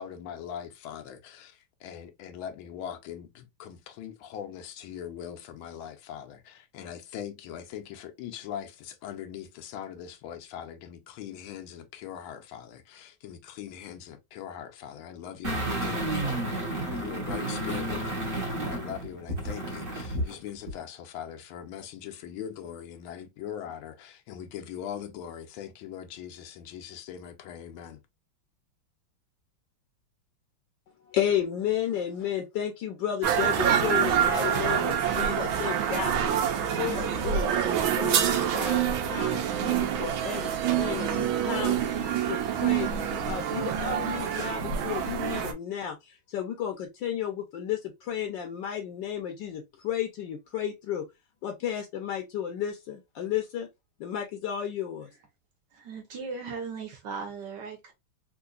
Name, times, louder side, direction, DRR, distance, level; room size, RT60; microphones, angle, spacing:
voice 1, 0.0-28.0, left 9 dB, 90° left, 1.5 m, -41 dB
sound 1, 15.4-20.3 20.7-20.8, right 1 dB, 35° right, 1.1 m, -31 dB
voice 2, 31.1-36.4 36.8-37.5 38.0-41.8 42.2-51.0 51.4-53.7 54.0-55.1, left 10 dB, 75° left, 1.2 m, -33 dB
sound 2, 33.2-45.5, right 9 dB, 80° right, 1.4 m, -26 dB
voice 3, 55.7-57.9, right 5 dB, 65° right, 1.5 m, -37 dB
3.7 x 2.6 x 2.3 m
omnidirectional pair, 2.2 m